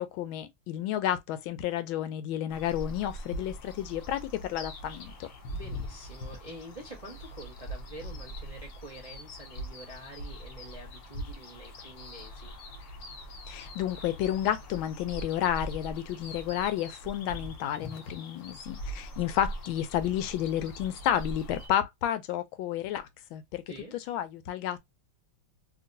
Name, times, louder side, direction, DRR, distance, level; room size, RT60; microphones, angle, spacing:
voice 1, 0.0-5.3 13.5-23.6 24.1-24.8, left 11 dB, 80° left, 1.3 m, -31 dB
sound 1, 2.5-21.7, equal, 65° left, 0.7 m, -42 dB
voice 2, 5.5-12.5 23.7-23.9, right 1 dB, 30° right, 0.6 m, -47 dB
2.9 x 2.9 x 2.5 m
omnidirectional pair, 2.2 m